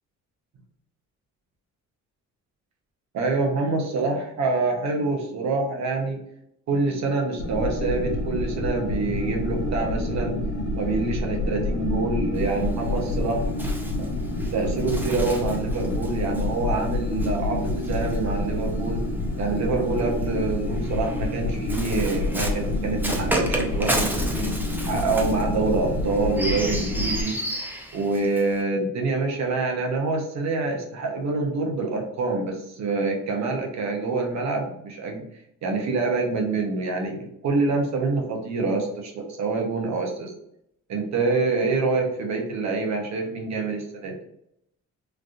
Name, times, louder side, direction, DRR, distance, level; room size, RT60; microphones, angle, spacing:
voice 1, 3.1-6.2 6.7-10.4 10.8-13.7 14.0-14.1 14.5-19.0 19.4-24.5 24.9-27.4 27.6-35.2 35.6-40.3 40.9-44.1, right 3 dB, 65° right, 1 dB, 0.8 m, -26 dB
sound 1, 7.4-27.2, left 2 dB, 75° left, 1.1 m, -28 dB
Bird, 12.3-18.9 19.8-28.6, right 1 dB, 5° right, 0.5 m, -33 dB
3.3 x 2.6 x 2.4 m, 0.76 s
cardioid pair, 90°, 30 cm